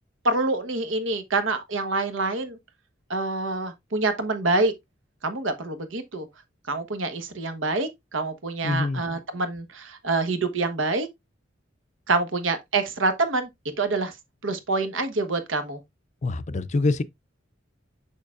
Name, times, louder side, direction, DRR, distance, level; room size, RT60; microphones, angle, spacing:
voice 1, 0.2-2.6 3.1-4.7 5.2-6.3 6.7-11.1 12.1-13.5 13.8-14.1 14.4-15.8, right 3 dB, 90° right, 1.2 m, -26 dB
voice 2, 8.6-9.0 16.2-17.0, left 3 dB, 40° left, 0.5 m, -25 dB
6.5 x 5.9 x 2.5 m
head